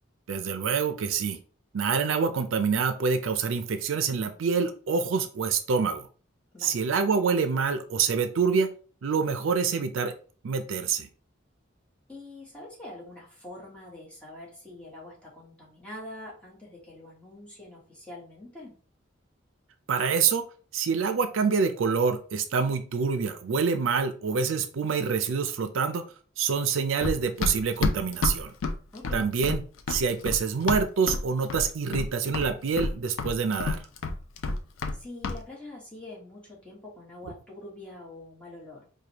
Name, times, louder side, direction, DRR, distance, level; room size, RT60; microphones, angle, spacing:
voice 1, 0.3-1.4 1.7-6.1 6.6-8.7 9.0-10.1 10.4-11.1 19.9-20.4 20.7-26.0 26.4-28.5 29.1-29.6 29.9-33.8, right 5 dB, 75° right, 9 dB, 0.4 m, -26 dB
voice 2, 12.1-18.7 28.9-29.3 34.9-38.9, left 1 dB, 5° left, -5 dB, 1.2 m, -44 dB
Run, 27.0-31.2 31.5-32.1 32.3-35.0 35.2-35.4, left 3 dB, 80° left, 0.4 m, -29 dB
4.8 x 2.2 x 2.9 m, 0.40 s
head